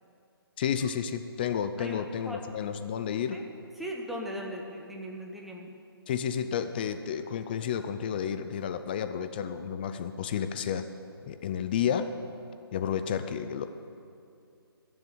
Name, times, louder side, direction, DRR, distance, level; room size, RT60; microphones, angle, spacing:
voice 1, 0.6-3.4 6.1-10.8 11.3-12.1 12.7-13.7, left 8 dB, 25° left, 10 dB, 0.4 m, -31 dB
voice 2, 1.8-2.5 3.3-3.4 3.8-5.7, equal, ahead, 0 dB, 0.8 m, -38 dB
15.0 x 7.0 x 8.8 m, 2.6 s
hypercardioid pair, 155°, 13 cm